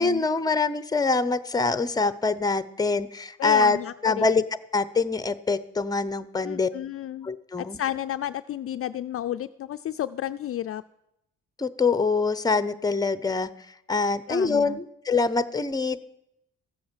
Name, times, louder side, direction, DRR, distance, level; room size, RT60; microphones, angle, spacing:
voice 1, 0.0-4.4 4.7-6.7 7.2-7.8 11.6-13.5 13.9-16.0, left 4 dB, 15° left, 15 dB, 0.7 m, -24 dB
voice 2, 3.4-4.4 6.4-7.3 7.6-10.8 14.3-14.8, left 11 dB, 50° left, 10 dB, 0.4 m, -32 dB
14.0 x 8.4 x 7.5 m, 0.81 s
cardioid pair, 90°, 30 cm